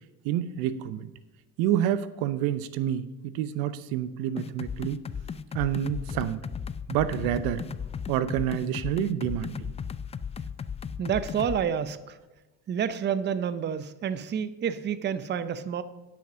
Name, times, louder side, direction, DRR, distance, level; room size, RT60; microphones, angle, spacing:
voice 1, 0.2-1.1 1.6-5.0 5.5-6.5 6.9-7.6 8.1-9.7, right 11 dB, 85° right, 14 dB, 0.8 m, -28 dB
sound 1, 4.4-11.6, left 6 dB, 20° left, 0.3 m, -36 dB
voice 2, 11.0-12.2 12.7-15.8, right 8 dB, 30° right, 14 dB, 0.6 m, -29 dB
10.0 x 6.0 x 6.1 m, 1.1 s
cardioid pair, 120°, 36 cm